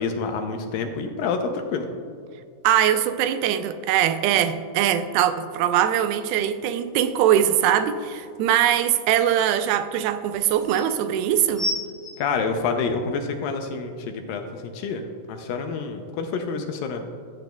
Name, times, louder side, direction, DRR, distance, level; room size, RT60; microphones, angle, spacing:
voice 1, 0.0-1.9 12.2-17.0, left 5 dB, 80° left, 5 dB, 2.2 m, -28 dB
voice 2, 2.6-11.7, right 10 dB, 85° right, 10 dB, 2.5 m, -22 dB
sound 1, 10.3-10.8 11.5-13.2 13.9-14.0, equal, 5° left, 1.6 m, -31 dB
14.0 x 8.9 x 2.3 m, 2.2 s
omnidirectional pair, 4.3 m